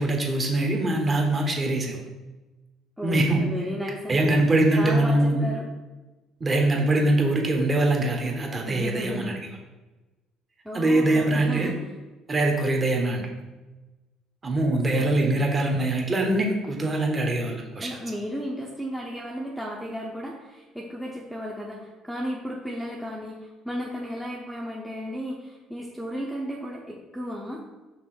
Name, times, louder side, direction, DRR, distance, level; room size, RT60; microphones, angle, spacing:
voice 1, 0.0-2.0 3.0-3.5 4.1-5.5 6.4-9.4 10.7-11.7 12.3-13.2 14.4-18.0, right 2 dB, 25° right, 2 dB, 1.3 m, -23 dB
voice 2, 3.0-4.4 4.8-5.7 8.6-9.4 10.6-11.7 14.9-15.5 17.8-27.7, equal, ahead, -3 dB, 0.8 m, -34 dB
5.9 x 3.7 x 6.1 m, 1.1 s
cardioid pair, 135°, 0 cm